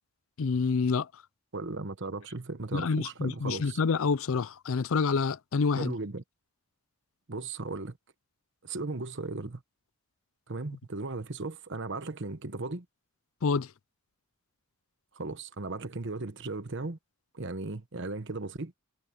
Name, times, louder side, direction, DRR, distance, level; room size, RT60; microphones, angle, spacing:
voice 1, 0.4-1.1 2.7-5.9 13.4-13.7, left 5 dB, 65° left, 0.5 m, -27 dB
voice 2, 1.5-3.8 5.8-6.2 7.3-8.0 8.6-9.6 10.5-12.8 15.1-17.0 17.3-18.7, right 3 dB, 55° right, 1.1 m, -36 dB
head